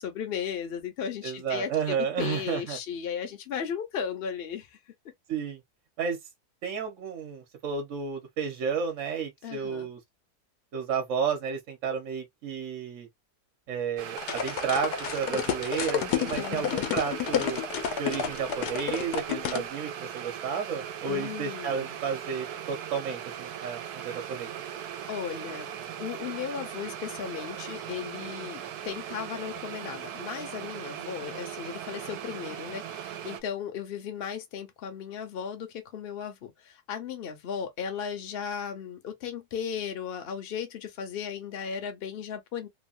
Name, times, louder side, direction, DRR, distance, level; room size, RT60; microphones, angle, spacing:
voice 1, 0.0-4.8 9.4-9.9 16.3-16.9 21.1-22.0 25.1-25.7 26.0-42.7, left 7 dB, 50° left, 0.8 m, -36 dB
voice 2, 1.2-2.8 5.3-5.6 6.0-6.2 6.6-10.0 10.7-13.1 13.7-17.6 18.0-24.5, right 6 dB, 55° right, 1.1 m, -32 dB
sound 1, 14.0-33.4, right 9 dB, 80° right, 1.1 m, -39 dB
sound 2, 14.2-19.7, left 9 dB, 85° left, 1.2 m, -30 dB
3.0 x 2.2 x 2.4 m
omnidirectional pair, 1.7 m